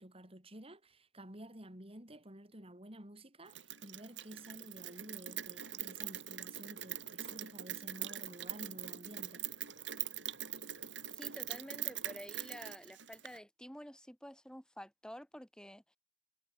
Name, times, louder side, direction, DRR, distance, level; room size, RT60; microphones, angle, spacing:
voice 1, 0.0-9.4, right 1 dB, 35° right, 6.2 m, -52 dB
Rain, 3.5-13.4, right 12 dB, 90° right, 4.1 m, -43 dB
voice 2, 11.1-16.0, equal, 5° left, 5.0 m, -50 dB
head